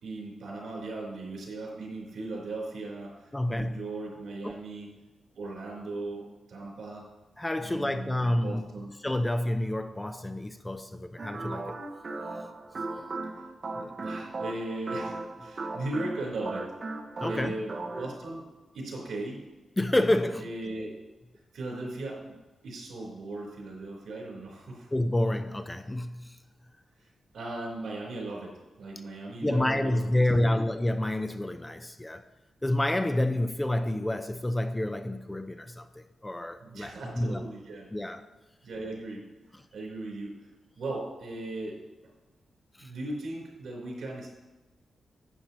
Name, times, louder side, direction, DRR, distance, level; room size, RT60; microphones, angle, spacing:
voice 1, 0.0-4.9 5.3-7.1 7.6-8.9 13.0-13.1 13.7-16.7 17.2-18.5 18.7-19.4 20.4-20.9 21.5-22.4 22.6-24.9 27.0-27.1 27.3-28.5 28.8-30.6 36.6-37.9 38.6-39.2 39.7-40.5 40.8-41.8 42.8-44.3, right 2 dB, 80° right, 3.7 m, -38 dB
voice 2, 3.3-3.7 4.4-4.6 7.4-8.6 9.0-11.8 17.2-17.6 19.8-20.5 24.9-26.4 29.4-32.2 32.6-37.5 37.9-38.2 42.8-42.9, left 1 dB, 10° left, 0.5 m, -28 dB
sound 1, 11.2-18.2, right 3 dB, 40° right, 0.8 m, -37 dB
11.5 x 9.0 x 2.9 m
wide cardioid pair, 130°, 0 cm